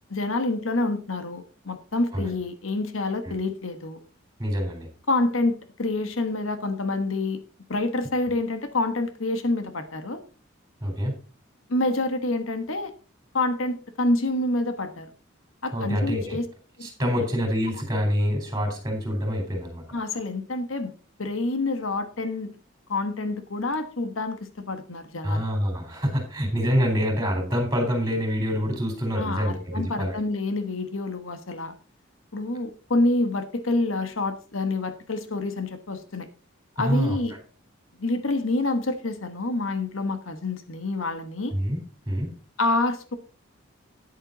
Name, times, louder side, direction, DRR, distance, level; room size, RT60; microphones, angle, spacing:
voice 1, 0.1-4.0 5.1-7.4 7.7-10.2 11.7-12.9 13.3-15.1 15.6-16.5 16.8-16.9 17.2-17.3 19.9-20.9 21.2-22.5 22.9-25.4 29.2-31.7 32.3-36.3 36.8-37.3 38.0-41.5 42.6-43.2, left 2 dB, 85° left, 9 dB, 1.3 m, -27 dB
voice 2, 4.4-4.9 10.8-11.1 15.7-16.4 16.8-19.8 25.2-30.2 36.8-37.2 41.5-41.8 42.1-42.3, equal, 15° right, 2 dB, 4.0 m, -26 dB
10.0 x 8.8 x 4.0 m, 0.36 s
head